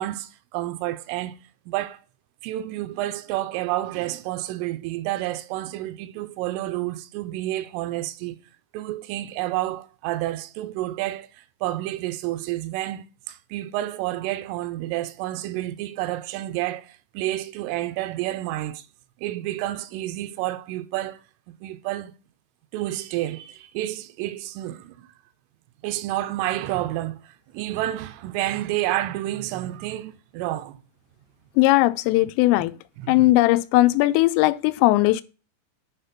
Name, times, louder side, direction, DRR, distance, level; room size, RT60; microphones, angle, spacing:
voice 1, 0.0-1.4 1.7-2.0 2.4-8.4 8.7-18.9 19.2-21.2 21.5-22.1 22.7-25.1 25.8-30.8 33.0-33.3, right 15 dB, 85° right, 3.2 m, -30 dB
voice 2, 31.6-32.7 33.1-35.2, left 18 dB, 90° left, 3.2 m, -18 dB
10.0 x 5.1 x 5.8 m
omnidirectional pair, 5.8 m